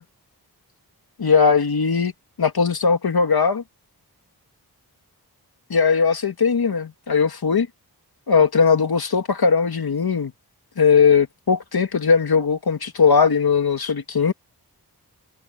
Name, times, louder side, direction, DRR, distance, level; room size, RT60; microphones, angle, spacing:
voice 1, 1.2-2.1 2.4-3.6 5.7-7.7 8.3-10.3 10.8-14.3, left 5 dB, 70° left, 2.3 m, -19 dB
wide cardioid pair, 85°, 39 cm